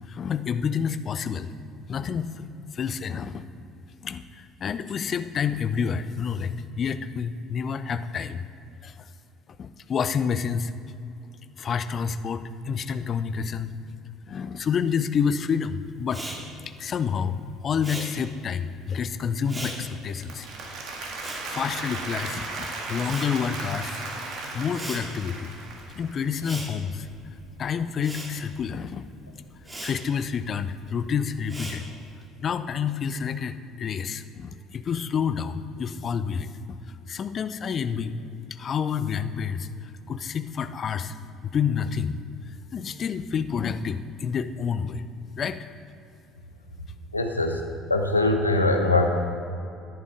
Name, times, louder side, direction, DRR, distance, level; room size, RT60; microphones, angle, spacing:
voice 1, 0.0-1.5 1.9-2.4 2.7-3.4 4.0-8.4 8.8-9.1 9.6-10.7 11.6-13.7 14.3-16.2 16.7-20.5 21.5-24.0 24.5-25.5 26.0-27.1 27.6-29.1 29.8-31.9 32.4-36.8 37.1-38.2 38.5-41.2 41.4-42.2 42.7-45.0 45.4-45.7, left 6 dB, 40° left, 12 dB, 0.5 m, -29 dB
Respiratory sounds, 16.0-22.5 22.8-32.2, right 1 dB, 15° right, 2.2 m, -41 dB
Applause, 20.0-26.3, right 3 dB, 55° right, 1.9 m, -35 dB
voice 2, 47.1-47.6 47.9-49.1, left 2 dB, 90° left, 5 dB, 0.7 m, -22 dB
13.0 x 11.0 x 3.7 m, 2.6 s
figure-of-eight pair, 55°, 0 cm